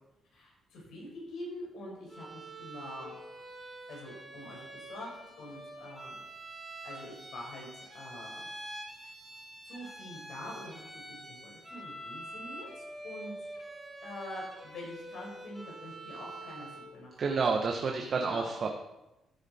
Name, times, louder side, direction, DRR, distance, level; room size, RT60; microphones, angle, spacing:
voice 1, 0.3-3.2 3.9-5.1 5.4-6.2 6.8-8.5 9.6-12.7 13.0-13.5 14.0-17.5 17.8-18.7, left 1 dB, 75° left, -2 dB, 4.6 m, -45 dB
Bowed string instrument, 2.1-17.0, right 1 dB, 5° right, 3.8 m, -46 dB
voice 2, 17.2-18.7, right 4 dB, 50° right, 3 dB, 1.0 m, -29 dB
13.5 x 6.9 x 4.2 m, 0.95 s
cardioid pair, 90°, 0 cm